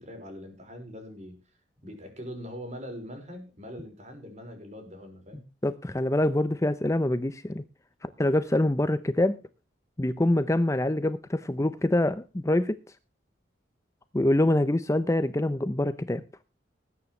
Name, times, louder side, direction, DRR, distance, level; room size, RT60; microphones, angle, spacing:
voice 1, 0.0-1.4 1.8-5.5, equal, 40° right, 5.0 m, -42 dB
voice 2, 5.6-7.6 8.0-9.4 10.0-12.8 14.1-16.2, left 1 dB, 15° left, 0.6 m, -25 dB
19.5 x 9.6 x 3.2 m
head